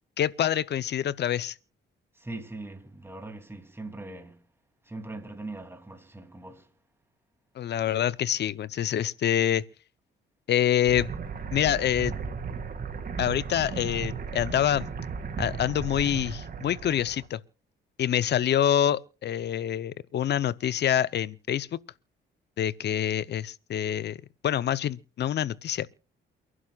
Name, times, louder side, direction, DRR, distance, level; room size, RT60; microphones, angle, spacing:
voice 1, 0.2-1.5 7.6-9.6 10.5-11.1 11.5-12.1 13.2-14.9 15.4-17.4 18.0-21.8 22.6-25.9, left 10 dB, 60° left, 0.8 m, -26 dB
voice 2, 2.1-4.4 4.8-6.7, right 2 dB, 10° right, 3.0 m, -41 dB
sound 1, 10.9-17.3, right 5 dB, 45° right, 2.3 m, -35 dB
29.0 x 11.0 x 2.4 m
cardioid pair, 90°, 20 cm